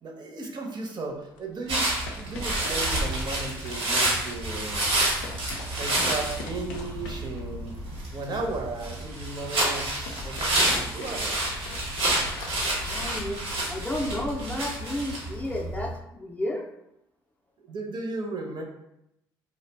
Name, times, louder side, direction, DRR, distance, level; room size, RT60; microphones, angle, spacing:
voice 1, 0.0-4.9 5.8-7.8 8.1-9.9 10.2-11.4 17.7-18.6, right 3 dB, 45° right, 2 dB, 0.6 m, -35 dB
sound 1, 1.1-14.6, left 3 dB, 90° left, 0.4 m, -42 dB
sound 2, 1.7-15.9, right 1 dB, 80° right, 1.0 m, -29 dB
voice 2, 12.8-13.4 13.7-16.6, left 1 dB, 15° left, 0 dB, 0.4 m, -32 dB
2.4 x 2.0 x 3.2 m, 0.82 s
hypercardioid pair, 60°, 10 cm